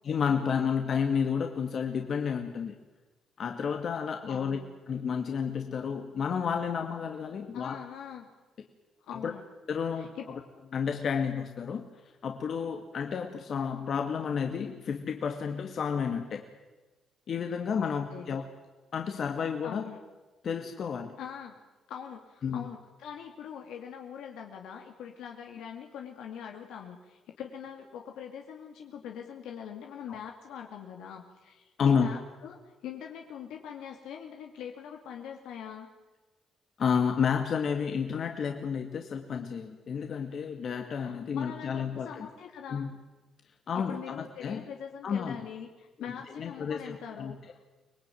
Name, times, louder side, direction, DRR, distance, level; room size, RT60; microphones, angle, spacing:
voice 1, 0.0-2.7 3.4-4.6 4.9-7.8 9.2-9.3 9.7-10.4 10.7-11.9 12.2-16.4 17.3-18.4 18.9-19.9 20.4-21.2 22.4-22.7 31.8-32.1 36.8-42.3 42.7-42.9 43.7-44.6 45.0-45.4 46.1-47.3, left 6 dB, 55° left, 4 dB, 2.1 m, -31 dB
voice 2, 4.3-4.6 7.5-8.3 9.1-9.4 10.0-10.3 17.8-18.3 19.6-20.0 21.2-21.6 21.9-35.9 40.9-42.9 43.8-47.6, left 8 dB, 85° left, 2 dB, 2.3 m, -43 dB
24.5 x 19.5 x 9.3 m, 1.2 s
cardioid pair, 90°, 0 cm